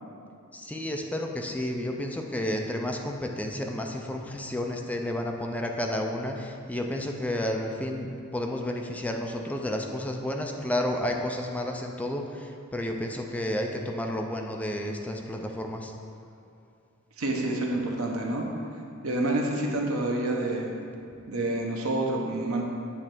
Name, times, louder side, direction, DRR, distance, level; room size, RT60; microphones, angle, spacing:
voice 1, 0.5-15.9, left 1 dB, 5° left, 2 dB, 0.4 m, -31 dB
voice 2, 17.2-18.4 19.0-20.7 21.3-22.6, right 2 dB, 90° right, 0 dB, 1.0 m, -28 dB
8.4 x 3.2 x 6.0 m, 2.5 s
head